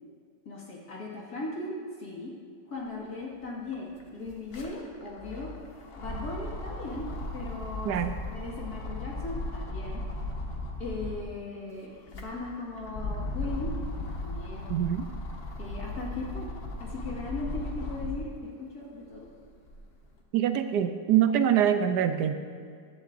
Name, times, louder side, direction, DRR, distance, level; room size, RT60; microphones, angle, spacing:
voice 1, 0.5-2.3 2.7-5.5 6.0-7.1 7.3-8.0 8.3-10.0 10.8-13.7 14.1-14.7 15.6-16.5 16.8-19.3, left 2 dB, 60° left, -4 dB, 2.4 m, -38 dB
sound 1, 3.2-3.3 3.6-11.4 11.9-18.4 18.9-20.0, left 2 dB, 40° left, 1.1 m, -37 dB
voice 2, 14.7-15.1 20.3-22.3, right 9 dB, 70° right, 9 dB, 1.2 m, -24 dB
15.0 x 11.5 x 2.6 m, 2.1 s
omnidirectional pair, 1.9 m